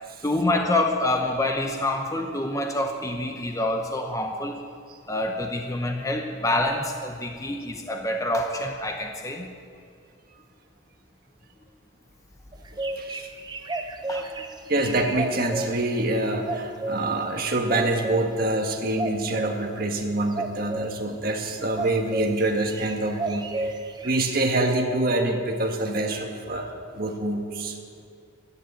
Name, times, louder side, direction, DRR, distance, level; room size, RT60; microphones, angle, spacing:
voice 1, 0.2-4.6 5.1-9.5 14.1-14.3, left 1 dB, 15° left, 3 dB, 0.8 m, -26 dB
sound 1, 12.5-15.7 16.5-17.1 17.7-18.2 19.0-19.5 20.3-21.0 21.8-22.3 22.6-24.4, right 2 dB, 20° right, 0.8 m, -31 dB
voice 2, 13.0-13.3 14.7-23.8 24.0-26.7 26.9-27.8, right 2 dB, 45° right, 3 dB, 1.5 m, -26 dB
11.5 x 10.5 x 8.4 m, 2.3 s
head